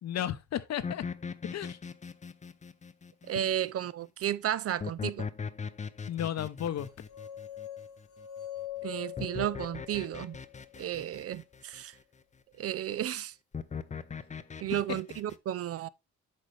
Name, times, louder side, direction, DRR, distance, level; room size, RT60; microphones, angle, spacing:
voice 1, 0.0-1.0 1.5-1.8 6.1-6.9, left 10 dB, 60° left, 0.9 m, -33 dB
sound 1, 0.8-3.7 4.8-8.2 9.2-11.8 13.5-15.4, left 5 dB, 25° left, 0.6 m, -40 dB
voice 2, 3.3-5.3 8.8-10.4 10.8-11.9 12.6-13.3 14.6-15.9, right 11 dB, 50° right, 0.5 m, -33 dB
sound 2, 6.8-10.9, left 12 dB, 85° left, 2.3 m, -43 dB
8.6 x 5.2 x 3.2 m
cardioid pair, 90°, 30 cm